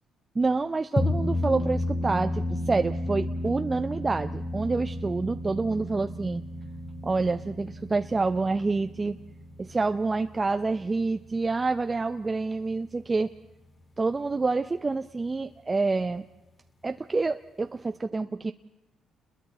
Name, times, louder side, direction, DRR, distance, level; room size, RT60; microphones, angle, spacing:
voice 1, 0.3-6.4 7.0-9.2 9.6-13.3 14.0-16.2 16.8-18.5, right 3 dB, 25° right, 8 dB, 0.6 m, -27 dB
sound 1, 1.0-11.6, left 1 dB, 25° left, 1.7 m, -33 dB
28.5 x 21.5 x 4.2 m, 1.0 s
cardioid pair, 90°, 0 cm